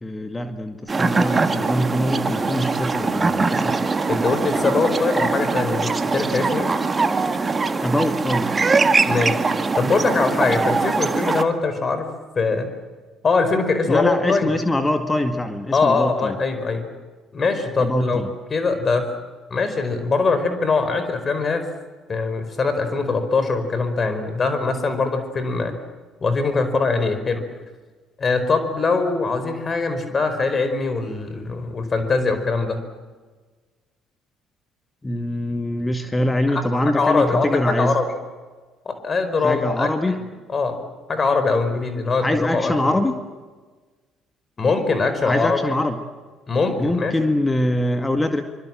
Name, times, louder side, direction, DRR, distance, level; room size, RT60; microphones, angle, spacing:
voice 1, 0.0-3.9 7.8-8.5 13.9-16.4 17.8-18.3 35.0-38.0 39.4-40.3 42.2-43.2 45.3-46.0 46.8-48.4, left 1 dB, 15° left, 7 dB, 2.0 m, -23 dB
sound 1, 0.9-11.4, right 4 dB, 30° right, 1.8 m, -22 dB
voice 2, 4.1-6.7 9.0-9.4 9.8-12.1 12.3-12.7 13.2-14.5 15.7-16.9 17.3-18.2 18.5-19.1 19.5-21.7 22.1-25.7 26.2-27.4 28.2-32.8 36.5-36.6 36.9-37.5 37.8-38.1 38.8-40.2 40.5-40.8 41.1-42.7 44.6-45.8 46.5-47.1, left 4 dB, 35° left, 9 dB, 4.8 m, -22 dB
25.0 x 25.0 x 7.7 m, 1.4 s
figure-of-eight pair, 50°, 0 cm